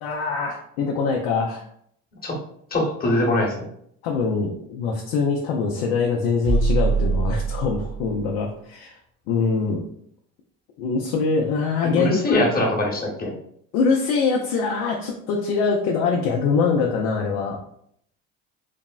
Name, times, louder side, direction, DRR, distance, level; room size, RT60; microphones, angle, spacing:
voice 1, 0.0-1.6 4.0-9.0 9.3-9.8 10.8-12.5 13.7-17.6, left 5 dB, 85° left, 0 dB, 0.5 m, -23 dB
voice 2, 2.7-3.7 11.8-13.3, left 1 dB, 25° left, -1 dB, 1.0 m, -22 dB
sound 1, 6.5-8.3, right 4 dB, 80° right, 0.8 m, -23 dB
3.4 x 2.0 x 2.3 m, 0.68 s
supercardioid pair, 75°, 37 cm